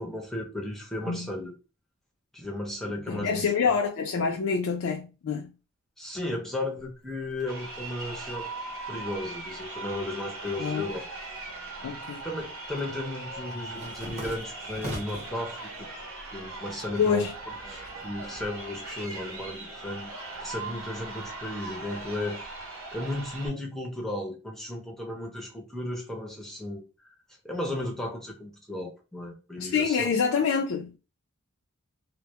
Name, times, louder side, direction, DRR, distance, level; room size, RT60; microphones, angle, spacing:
voice 1, 0.0-1.5 2.3-3.5 6.0-8.5 8.9-11.0 12.2-15.9 16.3-17.2 17.7-20.1 20.4-22.4 22.9-27.1 27.4-30.1, left 1 dB, ahead, 0.5 m, -35 dB
voice 2, 3.1-5.5 10.6-10.9 11.8-12.2 17.0-17.3 29.6-31.0, left 6 dB, 70° left, 0.4 m, -26 dB
Crowd, 7.4-23.5, right 2 dB, 75° right, 0.8 m, -40 dB
sound 1, 11.5-12.3 12.6-15.4 15.8-16.5 16.8-18.5, equal, 30° right, 0.8 m, -41 dB
2.1 x 2.0 x 2.8 m
head